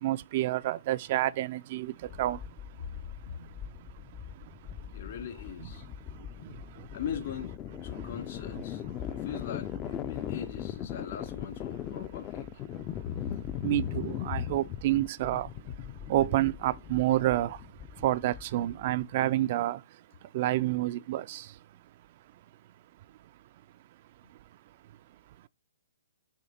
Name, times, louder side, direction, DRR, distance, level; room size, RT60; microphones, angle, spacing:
voice 1, 0.0-5.1 5.6-7.0 7.9-8.1 8.5-9.3 10.1-10.3 11.7-11.9 12.7-22.1 22.3-22.4 23.1-23.3 24.3-25.5, right 15 dB, 45° right, 0.3 m, -32 dB
sound 1, 2.0-19.0, left 10 dB, 25° left, 0.4 m, -39 dB
voice 2, 4.9-5.8 6.1-6.2 6.9-7.6 7.8-8.8 9.1-12.5, left 8 dB, 60° left, 2.3 m, -41 dB
7.3 x 3.1 x 5.7 m
hypercardioid pair, 140°, 0 cm